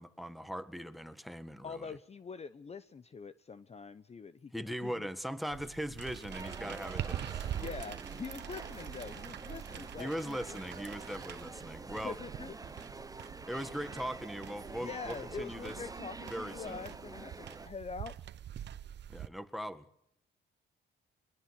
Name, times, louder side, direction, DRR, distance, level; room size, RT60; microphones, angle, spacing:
voice 1, 0.0-1.9 4.5-7.5 10.0-12.2 13.5-15.8 16.3-16.9 19.1-19.9, equal, ahead, 1.6 m, -40 dB
voice 2, 1.6-4.5 4.8-5.1 7.5-10.4 12.0-12.6 14.8-18.1, left 5 dB, 30° left, 0.9 m, -44 dB
sound 1, 5.5-19.3, right 10 dB, 60° right, 0.9 m, -45 dB
sound 2, 6.3-17.7, right 3 dB, 20° right, 1.0 m, -47 dB
22.0 x 21.5 x 6.7 m
cardioid pair, 90°, 20 cm